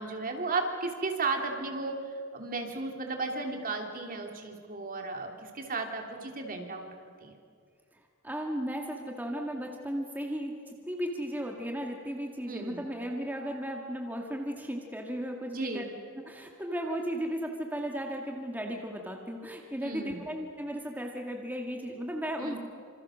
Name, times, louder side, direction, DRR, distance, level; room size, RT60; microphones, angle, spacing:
voice 1, 0.0-2.0 2.3-6.9 7.2-7.3 12.5-12.8 15.5-15.9 19.8-20.2 22.4-22.6, right 3 dB, 45° right, 3 dB, 3.0 m, -34 dB
voice 2, 7.9-15.8 16.3-22.6, equal, 10° right, 1 dB, 2.1 m, -35 dB
27.0 x 26.5 x 6.4 m, 2.2 s
head